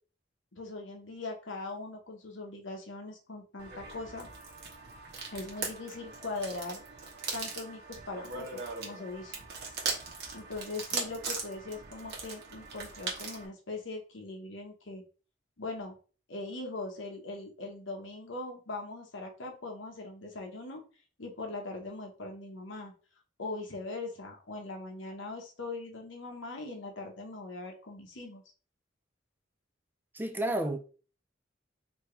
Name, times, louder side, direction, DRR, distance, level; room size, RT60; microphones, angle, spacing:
voice 1, 0.5-4.3 5.3-6.8 7.3-9.4 10.3-15.0 15.6-15.9 16.3-20.8 21.2-22.9 23.4-28.4, left 3 dB, 70° left, 1.1 m, -40 dB
sound 1, 3.6-13.5, right 4 dB, 60° right, 1.2 m, -39 dB
voice 2, 30.1-30.8, right 1 dB, 10° right, 0.4 m, -31 dB
4.4 x 2.8 x 3.2 m
head